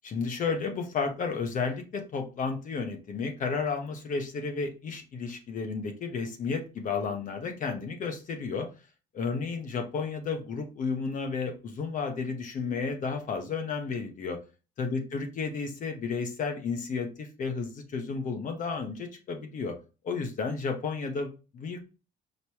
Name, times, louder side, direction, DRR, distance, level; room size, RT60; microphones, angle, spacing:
voice 1, 0.0-8.7 9.1-14.4 14.8-19.7 20.0-21.8, left 5 dB, 50° left, 5 dB, 1.0 m, -32 dB
5.2 x 3.0 x 2.9 m, 0.31 s
cardioid pair, 110°, 17 cm